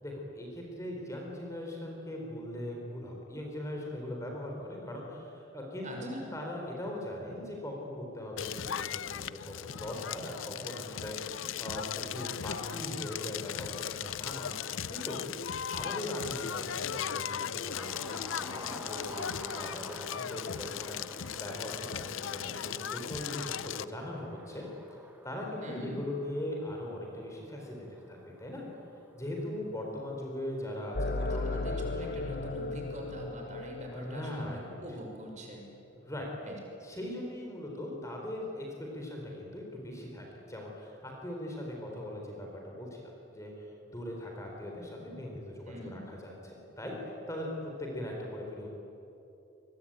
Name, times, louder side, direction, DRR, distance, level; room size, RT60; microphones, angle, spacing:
voice 1, 0.0-15.2 15.7-24.6 25.2-28.7 29.1-32.1 32.4-32.6 33.9-34.8 36.0-36.3 36.8-38.7 38.9-43.0 43.3-43.5 43.9-48.7, left 1 dB, 15° left, -1 dB, 4.4 m, -40 dB
voice 2, 5.8-6.3 25.6-26.0 31.2-35.7 36.4-36.6 45.7-46.0, equal, 35° right, 0 dB, 6.0 m, -43 dB
Crackle, 8.4-23.8, left 8 dB, 80° left, 0.6 m, -37 dB
sound 1, 17.7-29.2 30.7-30.8, right 1 dB, 10° right, 1.4 m, -50 dB
sound 2, 30.9-35.0, left 2 dB, 45° left, 1.0 m, -36 dB
27.5 x 22.0 x 9.1 m, 2.9 s
head